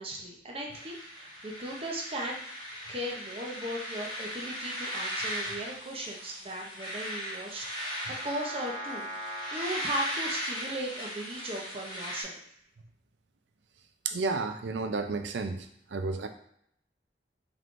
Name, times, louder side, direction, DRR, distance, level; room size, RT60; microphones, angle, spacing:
voice 1, 0.0-2.4 2.9-12.4, right 1 dB, 35° right, -1 dB, 0.7 m, -37 dB
sound 1, 0.7-12.2, equal, 25° left, 0.9 m, -37 dB
voice 2, 14.1-15.7 15.9-16.3, right 3 dB, 75° right, 7 dB, 0.5 m, -31 dB
4.3 x 3.6 x 2.5 m, 0.70 s
head